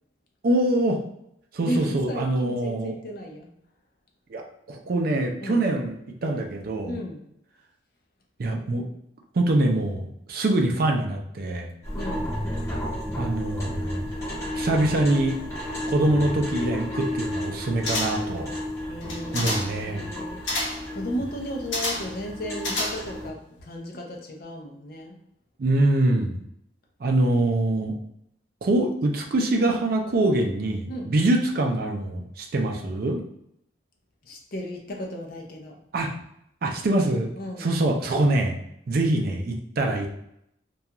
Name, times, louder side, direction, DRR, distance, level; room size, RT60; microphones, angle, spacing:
voice 1, 0.4-1.0 1.5-2.9 4.3-4.4 4.7-5.9 6.2-7.0 8.4-8.8 9.3-11.7 13.1-14.1 14.5-15.4 15.9-18.5 19.3-20.0 25.6-26.4 27.0-27.9 28.6-33.2 35.9-36.1 36.6-37.3 37.6-38.6 38.9-40.1, right 1 dB, 50° right, 2 dB, 0.4 m, -24 dB
voice 2, 1.6-3.5 5.4-5.7 6.9-7.2 11.9-12.4 18.9-20.6 20.9-25.2 30.1-30.3 30.9-31.2 34.2-35.8 37.4-37.7, equal, 50° left, 1 dB, 0.5 m, -34 dB
sound 1, 11.8-23.3, left 1 dB, 15° left, 1.0 m, -32 dB
sound 2, 17.8-18.4 19.0-19.8 20.5-20.9 21.7-22.2 22.6-23.3 23.6-23.7, left 1 dB, 75° left, 0.8 m, -29 dB
2.3 x 2.3 x 2.8 m, 0.76 s
head